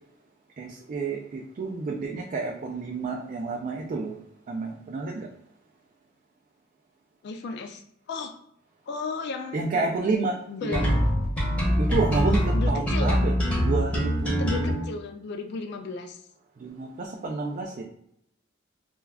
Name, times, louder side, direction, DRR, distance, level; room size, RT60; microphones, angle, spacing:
voice 1, 0.6-4.1 4.5-5.3 9.5-10.4 10.6-11.0 11.8-13.3 13.6-14.8 16.6-17.8, right 3 dB, 40° right, -1 dB, 0.3 m, -29 dB
voice 2, 7.2-7.8 8.1-8.3 8.9-10.1 10.5-10.9 12.5-13.3 14.4-16.2, left 4 dB, 60° left, 5 dB, 0.3 m, -34 dB
sound 1, 10.7-14.7, equal, 5° left, 0.7 m, -23 dB
2.3 x 2.2 x 3.3 m, 0.73 s
head